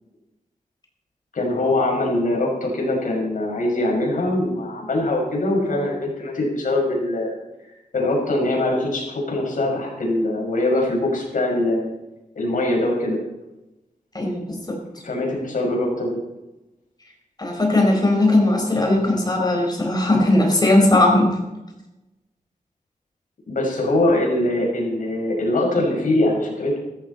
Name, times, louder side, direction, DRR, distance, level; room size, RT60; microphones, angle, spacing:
voice 1, 1.3-7.3 7.9-11.9 12.3-13.2 15.0-16.2 23.5-26.8, left 1 dB, 70° left, -1 dB, 6.0 m, -22 dB
voice 2, 14.1-14.8 17.4-21.3, left 1 dB, 30° left, 1 dB, 4.7 m, -18 dB
16.5 x 13.5 x 4.3 m, 0.99 s
wide cardioid pair, 150°, 14 cm